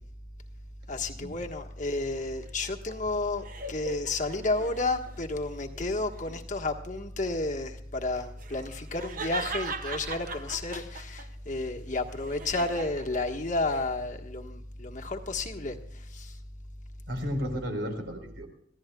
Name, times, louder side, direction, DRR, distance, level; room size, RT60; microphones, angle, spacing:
voice 1, 0.9-16.4, left 2 dB, 40° left, 3 dB, 1.4 m, -32 dB
sound 1, 2.1-5.2 5.7-6.4 8.1-11.3 11.7-13.9, right 4 dB, 45° right, 1.2 m, -40 dB
voice 2, 17.1-18.5, equal, 70° right, 4 dB, 4.0 m, -33 dB
26.0 x 15.5 x 2.3 m, 0.68 s
head